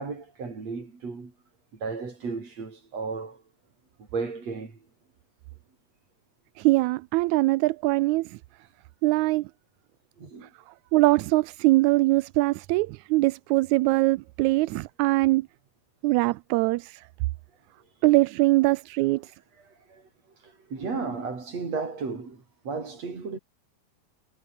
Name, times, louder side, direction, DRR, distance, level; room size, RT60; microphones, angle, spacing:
voice 1, 0.0-1.3 1.7-3.4 4.0-4.8 10.2-10.5 19.9-20.1 20.4-23.4, right 4 dB, 60° right, 6.2 m, -34 dB
voice 2, 6.6-8.4 9.0-9.5 10.9-15.5 16.0-17.0 18.0-19.3, right 20 dB, 80° right, 1.9 m, -22 dB
omnidirectional pair, 3.4 m